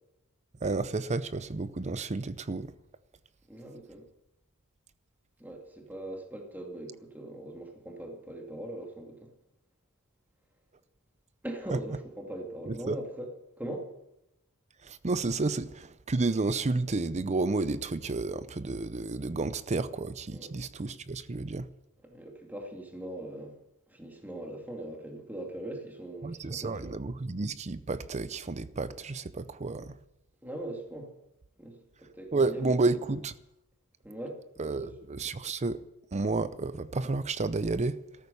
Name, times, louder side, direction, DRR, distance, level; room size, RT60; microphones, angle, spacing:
voice 1, 0.6-2.7 12.7-13.0 14.8-21.7 26.2-30.0 32.3-33.3 34.6-35.8 36.1-38.0, right 3 dB, 30° right, 0.6 m, -31 dB
voice 2, 3.5-4.0 5.4-9.3 11.4-13.3 13.6-13.9 20.3-20.5 22.0-23.6 23.9-26.9 30.4-31.1 31.6-32.8 34.0-34.9, right 1 dB, 10° right, 2.3 m, -41 dB
14.0 x 13.0 x 6.8 m
head